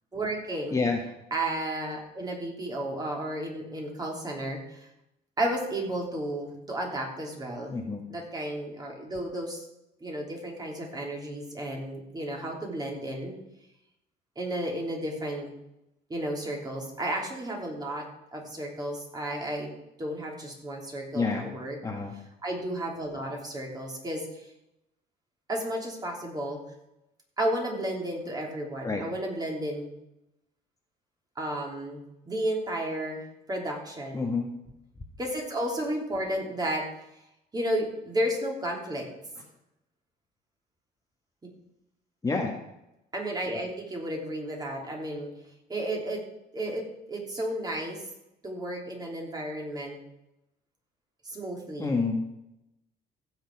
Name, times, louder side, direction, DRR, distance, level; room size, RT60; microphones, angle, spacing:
voice 1, 0.1-0.8 1.3-4.9 5.4-7.8 8.1-9.7 10.0-13.4 14.4-15.5 16.1-18.1 18.3-19.7 20.0-21.8 22.4-24.5 25.5-26.6 27.4-29.9 31.4-32.0 32.3-33.2 33.5-34.3 35.2-36.8 37.5-39.0 43.1-45.3 45.7-46.2 46.5-46.8 47.1-48.1 48.4-50.0 51.2-52.0, right 1 dB, 25° right, -1 dB, 3.4 m, -32 dB
voice 2, 7.7-8.1 21.1-21.4 21.8-22.1 28.8-29.0 34.1-34.5 42.2-42.5 51.8-52.2, left 4 dB, 20° left, 1 dB, 1.6 m, -28 dB
16.0 x 6.7 x 4.7 m, 0.86 s
cardioid pair, 110°, 17 cm